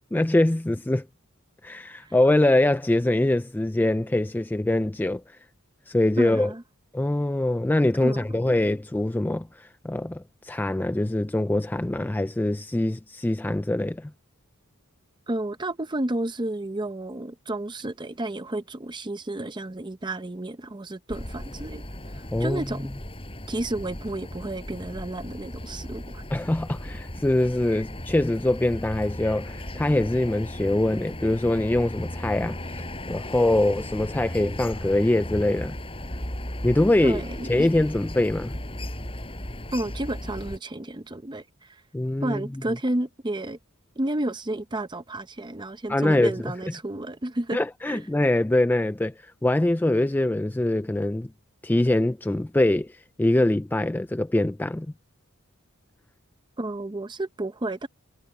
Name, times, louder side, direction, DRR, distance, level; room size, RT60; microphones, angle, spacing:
voice 1, 0.1-1.0 1.6-5.2 5.9-6.5 6.9-14.1 22.3-22.8 26.3-35.7 36.6-37.2 37.5-38.5 41.9-42.4 45.9-46.3 47.5-51.3 51.6-54.9, left 1 dB, 10° left, 0.3 m, -23 dB
voice 2, 6.2-6.6 8.0-8.2 15.3-21.8 22.4-22.9 23.5-26.2 37.0-37.7 39.7-41.7 42.2-43.6 44.0-47.6 47.9-48.0 56.6-57.9, right 1 dB, 20° right, 0.8 m, -31 dB
sound 1, 21.1-40.6, left 1 dB, 25° left, 7.2 m, -36 dB
head